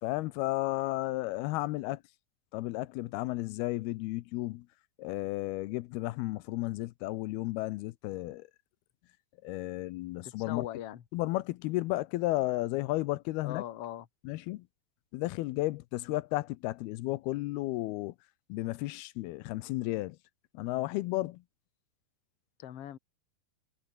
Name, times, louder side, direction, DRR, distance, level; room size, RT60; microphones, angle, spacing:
voice 1, 0.0-2.0 2.5-4.7 5.0-8.5 9.4-10.7 11.1-13.6 14.3-14.6 15.1-18.1 18.5-20.2 20.5-21.4, left 18 dB, 85° left, 2.6 m, -33 dB
voice 2, 10.2-11.0 13.4-14.1 22.6-23.0, left 12 dB, 50° left, 2.0 m, -40 dB
omnidirectional pair, 4.6 m